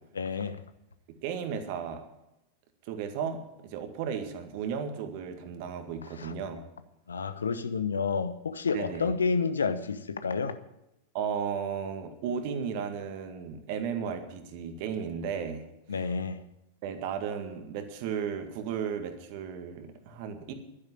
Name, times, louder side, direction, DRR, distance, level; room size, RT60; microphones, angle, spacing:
voice 1, 0.2-0.6 6.2-6.3 7.1-10.6 15.9-16.4, left 5 dB, 70° left, 0.9 m, -30 dB
voice 2, 1.2-2.1 2.9-6.6 8.7-9.2 11.1-15.6 15.9-16.1 16.8-20.5, right 7 dB, 45° right, 1.9 m, -34 dB
11.5 x 10.5 x 8.6 m
figure-of-eight pair, 90°, 0 cm